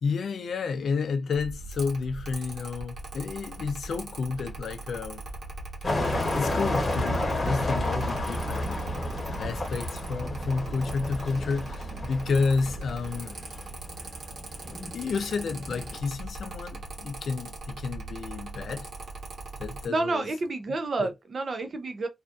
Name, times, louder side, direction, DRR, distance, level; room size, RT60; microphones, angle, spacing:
voice 1, 0.0-5.3 6.3-8.8 9.4-13.4 14.9-18.9 19.6-20.3 21.0-21.1, left 4 dB, 65° left, 0.4 m, -31 dB
Mechanical fan, 1.3-19.9, right 3 dB, 80° right, 1.1 m, -40 dB
sound 1, 5.8-16.0, left 1 dB, 25° left, 1.0 m, -31 dB
voice 2, 19.9-22.1, right 3 dB, 40° right, 0.4 m, -29 dB
2.5 x 2.3 x 2.4 m
wide cardioid pair, 170°, 0 cm